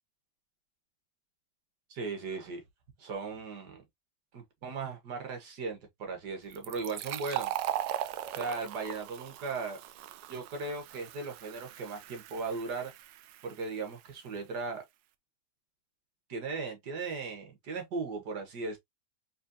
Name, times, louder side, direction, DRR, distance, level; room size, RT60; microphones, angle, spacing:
voice 1, 1.9-2.6 3.0-3.8 4.3-7.5 8.3-9.8 10.3-12.9 13.4-14.8 16.3-18.8, right 4 dB, 70° right, 1.9 m, -37 dB
Fill (with liquid), 6.5-13.9, right 12 dB, 85° right, 1.2 m, -39 dB
4.3 x 3.5 x 2.7 m
omnidirectional pair, 1.9 m